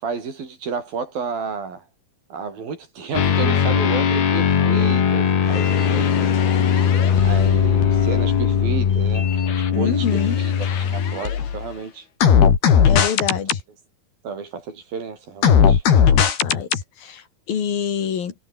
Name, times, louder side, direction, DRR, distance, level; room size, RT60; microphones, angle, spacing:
voice 1, 0.0-1.8 2.3-6.3 7.2-10.5 10.8-12.1 14.2-15.9, right 5 dB, 70° right, 6.8 m, -31 dB
sound 1, 3.1-11.7 12.2-13.6 15.4-16.8, left 7 dB, 90° left, 5.5 m, -18 dB
voice 2, 9.7-10.4 12.8-13.6 16.4-18.3, left 8 dB, 70° left, 4.7 m, -26 dB
omnidirectional pair, 4.4 m